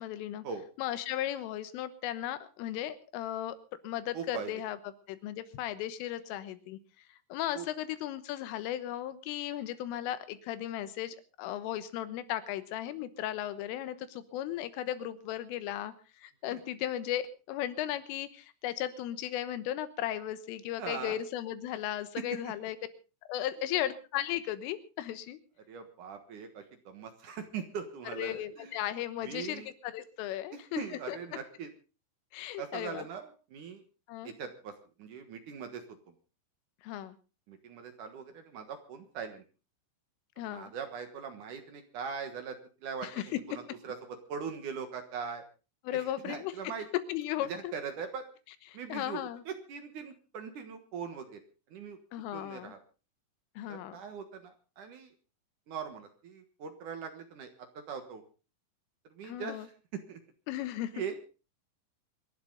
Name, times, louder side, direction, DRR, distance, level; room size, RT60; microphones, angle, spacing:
voice 1, 0.0-0.5 0.8-3.6 3.8-4.8 5.1-6.8 7.3-15.9 16.2-22.8 23.3-25.4 28.2-31.2 32.3-33.1 34.1-34.3 36.8-37.2 40.4-40.7 43.0-43.2 45.9-46.5 47.1-47.7 48.9-49.4 52.1-52.8 53.6-54.0 59.2-59.7 60.5-61.0, left 12 dB, 85° left, 13 dB, 3.7 m, -36 dB
voice 2, 4.1-4.5 7.5-7.7 16.5-16.6 20.8-21.2 22.2-22.3 23.7-23.8 25.7-28.8 29.2-29.7 30.5-31.7 32.6-33.8 34.2-34.7 35.0-36.1 37.5-39.4 40.4-43.4 43.8-45.4 45.9-46.9 47.5-48.2 48.7-49.2 49.5-51.4 51.7-52.0 52.3-52.8 53.7-55.1 55.7-58.2 59.1-60.2 60.9-61.2, right 6 dB, 65° right, 7 dB, 2.0 m, -41 dB
26.0 x 11.5 x 3.9 m, 0.34 s
omnidirectional pair, 5.6 m